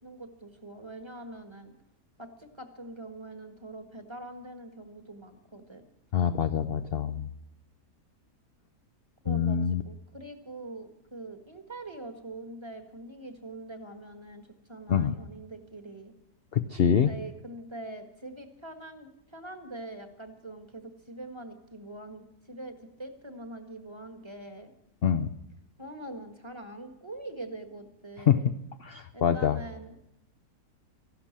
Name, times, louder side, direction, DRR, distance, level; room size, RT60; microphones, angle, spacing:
voice 1, 0.0-1.7 2.2-5.8 9.2-9.6 9.8-16.1 17.0-24.7 25.8-28.5 29.1-30.0, right 2 dB, 15° right, 7 dB, 1.4 m, -43 dB
voice 2, 6.1-7.3 9.3-9.8 14.9-15.2 16.5-17.1 25.0-25.3 28.3-28.5 28.8-29.6, left 8 dB, 60° left, 10 dB, 0.6 m, -25 dB
14.5 x 12.0 x 7.4 m, 0.84 s
omnidirectional pair, 1.7 m